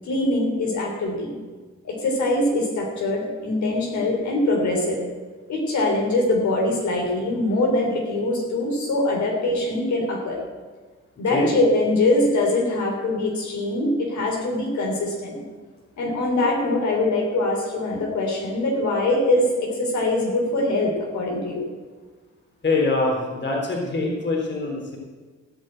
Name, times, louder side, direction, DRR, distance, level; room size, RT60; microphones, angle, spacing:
voice 1, 0.0-1.3 1.8-5.0 5.5-10.4 11.2-15.4 16.0-21.7, left 2 dB, 70° left, -1 dB, 3.4 m, -23 dB
voice 2, 22.6-25.0, left 3 dB, 35° left, -1 dB, 3.5 m, -24 dB
16.0 x 5.4 x 8.9 m, 1.4 s
cardioid pair, 90°, 30 cm